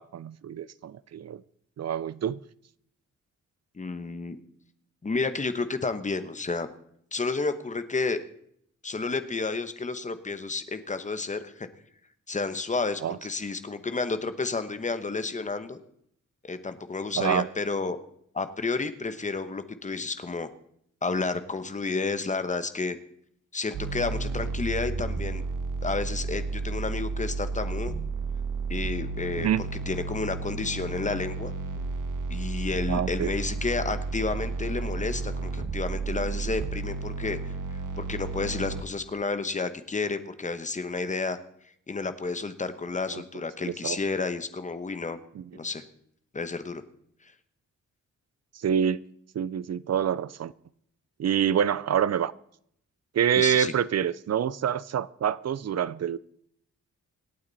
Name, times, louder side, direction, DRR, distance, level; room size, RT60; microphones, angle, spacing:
voice 1, 0.0-1.4 1.8-2.4 13.0-13.2 17.2-17.5 29.4-29.6 32.9-33.3 43.1-43.2 43.6-44.0 45.4-45.5 48.6-49.0 49.3-50.5 51.2-52.3 53.1-56.2, right 9 dB, 55° right, 0.6 m, -26 dB
voice 2, 3.7-4.4 5.0-6.7 7.1-8.2 8.8-11.7 12.3-15.8 16.4-18.0 18.3-20.5 21.0-23.0 23.5-25.4 25.8-27.9 28.7-31.5 32.3-41.4 41.9-45.2 45.5-45.8 46.3-46.8 53.4-53.7, left 3 dB, 25° left, 1.0 m, -31 dB
sound 1, 23.7-38.8, right 4 dB, 80° right, 1.6 m, -32 dB
26.0 x 8.9 x 4.1 m
wide cardioid pair, 175°, 31 cm